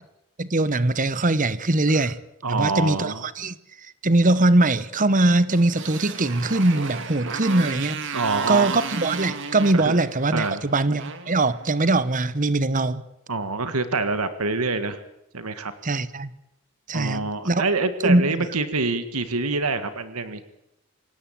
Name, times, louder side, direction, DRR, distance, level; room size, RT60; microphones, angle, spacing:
voice 1, 0.4-2.2 2.5-3.5 4.0-8.0 8.5-13.0 15.8-16.3 16.9-17.6 18.0-18.3, right 2 dB, 35° right, 1.0 m, -21 dB
voice 2, 2.4-3.2 8.1-8.8 9.7-10.0 10.3-10.6 13.3-15.0 15.3-15.7 16.9-20.4, right 3 dB, 80° right, 1.8 m, -26 dB
Motorcycle, 5.5-12.0, right 5 dB, 55° right, 2.3 m, -34 dB
26.5 x 17.5 x 8.8 m
head